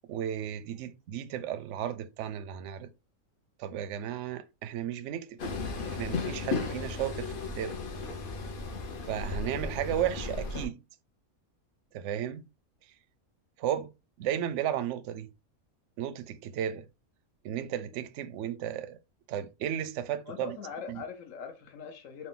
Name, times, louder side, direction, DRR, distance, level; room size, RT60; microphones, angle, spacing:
voice 1, 0.1-2.9 3.6-5.4 5.9-7.8 9.1-10.8 11.9-12.5 13.6-13.9 14.2-15.3 16.0-16.9 17.4-19.0 19.3-20.6 20.9-21.0, right 10 dB, 65° right, 0.8 m, -34 dB
Train, 5.4-10.7, left 4 dB, 50° left, 0.7 m, -35 dB
voice 2, 20.2-22.3, left 5 dB, 65° left, 1.2 m, -41 dB
4.2 x 2.3 x 3.8 m
omnidirectional pair, 1.5 m